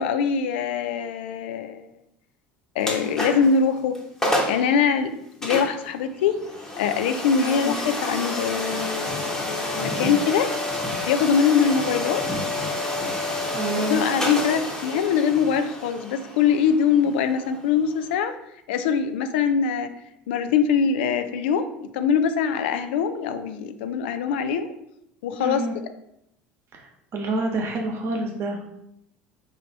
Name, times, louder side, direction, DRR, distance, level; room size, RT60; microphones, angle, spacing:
voice 1, 0.0-1.9 2.8-4.0 4.5-6.4 6.8-10.5 11.1-12.2 13.8-18.3 18.7-19.9 20.3-24.7 25.2-25.6, left 6 dB, 75° left, 9 dB, 0.3 m, -23 dB
sound 1, 2.8-3.6 4.0-4.1 4.2-4.7 5.4-18.1, left 1 dB, 10° left, 1.0 m, -29 dB
voice 2, 7.4-7.7 13.5-14.0 25.4-25.8 26.7-26.9 27.1-28.7, right 2 dB, 50° right, 2 dB, 0.9 m, -28 dB
3.2 x 2.7 x 4.1 m, 0.79 s
hypercardioid pair, 75°, 6 cm